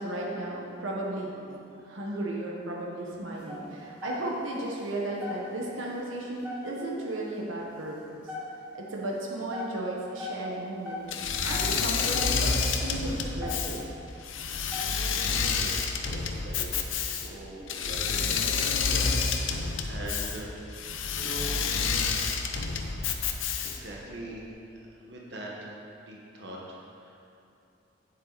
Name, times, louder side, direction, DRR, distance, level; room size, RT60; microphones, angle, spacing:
voice 1, 0.0-8.2 8.7-11.1 11.4-12.5 12.8-13.9, right 1 dB, 90° right, -2 dB, 1.2 m, -34 dB
sound 1, 3.4-4.5 4.9-5.0 5.2-5.8 6.1-7.0 7.4-7.6 8.0-8.8 9.3-12.7 13.1-13.2 13.4-14.0 14.5-15.3 15.8-16.0 16.5-16.6 17.1-17.3 17.8-18.1, left 3 dB, 10° right, 2.2 m, -39 dB
Engine / Mechanisms, 11.1-24.0, left 5 dB, 85° left, 0.7 m, -29 dB
voice 2, 15.1-18.5 18.8-20.5 21.1-21.5 22.9-23.2 23.6-27.2, right 1 dB, 60° right, -3 dB, 1.3 m, -43 dB
9.2 x 7.5 x 4.0 m, 2.7 s
head